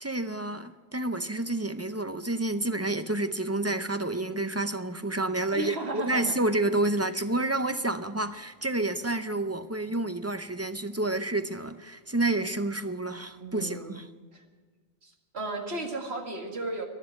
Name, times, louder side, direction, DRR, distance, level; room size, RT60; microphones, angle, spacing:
voice 1, 0.0-14.1, right 2 dB, 20° right, 0.4 m, -29 dB
voice 2, 5.5-6.4 13.4-13.9 14.3-14.4 15.0-16.9, right 2 dB, 60° right, 2.1 m, -35 dB
13.0 x 11.5 x 9.2 m
omnidirectional pair, 1.2 m